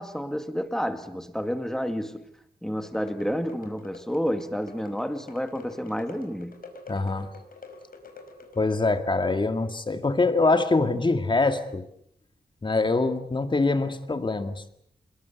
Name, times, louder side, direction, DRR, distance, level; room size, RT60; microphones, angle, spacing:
voice 1, 0.0-2.3 2.6-6.6, equal, 5° left, 9 dB, 2.2 m, -30 dB
sound 1, 2.8-8.8, left 3 dB, 65° left, 5.0 m, -47 dB
voice 2, 6.9-7.3 8.6-11.9 12.6-14.7, left 3 dB, 30° left, 8 dB, 2.2 m, -24 dB
26.5 x 22.0 x 8.4 m, 0.73 s
wide cardioid pair, 125°, 16 cm